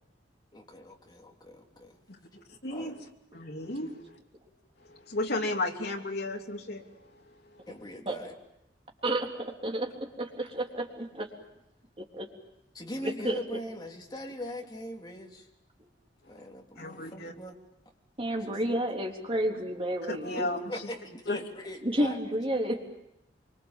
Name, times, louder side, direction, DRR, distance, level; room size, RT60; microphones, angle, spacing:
voice 1, 0.5-2.0 2.7-2.9 3.8-4.0 7.7-8.3 12.7-15.5 16.2-17.5 18.4-19.0 20.4-22.2, left 1 dB, 25° left, 0 dB, 3.3 m, -41 dB
voice 2, 2.5-3.0 3.3-4.2 4.8-7.6 16.2-16.4 16.8-17.3 20.1-20.9 21.3-21.4, left 2 dB, 65° left, 2 dB, 2.9 m, -34 dB
voice 3, 9.0-11.3 12.0-12.3 13.0-13.4 18.2-20.5 21.8-22.8, right 1 dB, 30° right, 1 dB, 3.6 m, -31 dB
26.0 x 24.5 x 7.4 m, 0.87 s
head